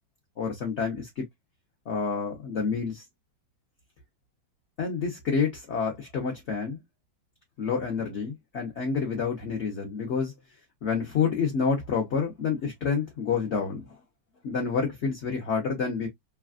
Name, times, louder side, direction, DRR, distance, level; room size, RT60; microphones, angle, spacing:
voice 1, 0.4-1.2 1.9-3.0 4.8-6.8 7.6-10.3 10.8-14.0 14.4-16.1, left 5 dB, 55° left, 0.8 m, -28 dB
3.3 x 2.3 x 2.3 m
omnidirectional pair, 2.1 m